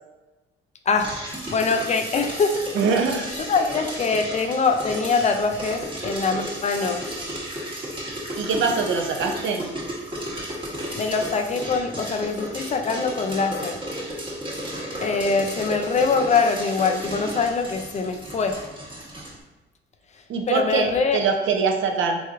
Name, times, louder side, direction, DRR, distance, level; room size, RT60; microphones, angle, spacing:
sound 1, 1.0-19.4, right 1 dB, 25° right, 1.1 m, -33 dB
voice 1, 1.5-2.6 3.4-7.1 10.9-13.8 15.0-18.6 20.5-21.2, left 4 dB, 35° left, 6 dB, 0.4 m, -23 dB
voice 2, 2.7-3.3 8.4-9.6 20.3-22.2, right 5 dB, 75° right, 3 dB, 0.6 m, -23 dB
3.8 x 3.0 x 2.4 m, 1.2 s
cardioid pair, 90°, 20 cm